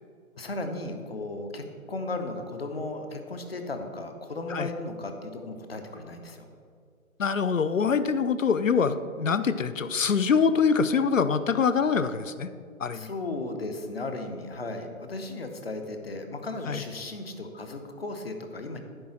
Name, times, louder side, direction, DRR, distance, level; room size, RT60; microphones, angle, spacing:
voice 1, 0.4-6.5 12.9-18.8, left 2 dB, 45° left, 6 dB, 0.9 m, -35 dB
voice 2, 7.2-12.5 12.8-13.1 16.7-16.8, left 6 dB, 65° left, 13 dB, 0.6 m, -24 dB
10.0 x 3.8 x 7.3 m, 2.2 s
figure-of-eight pair, 155°, 42 cm